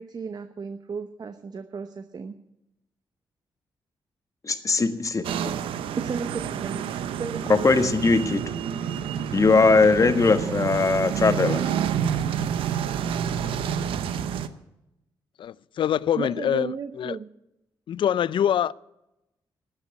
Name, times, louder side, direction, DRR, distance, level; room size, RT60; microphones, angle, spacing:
voice 1, 0.0-2.3 6.0-6.9 7.2-7.9 16.2-17.3, right 5 dB, 50° right, 0.8 m, -34 dB
voice 2, 4.4-5.5 7.5-8.4 9.3-11.6, left 4 dB, 35° left, 1.5 m, -20 dB
sound 1, 5.2-14.5, right 8 dB, 90° right, 0.7 m, -28 dB
voice 3, 15.4-17.2 17.9-18.7, left 10 dB, 70° left, 0.4 m, -25 dB
13.0 x 8.2 x 9.6 m
cardioid pair, 70°, 9 cm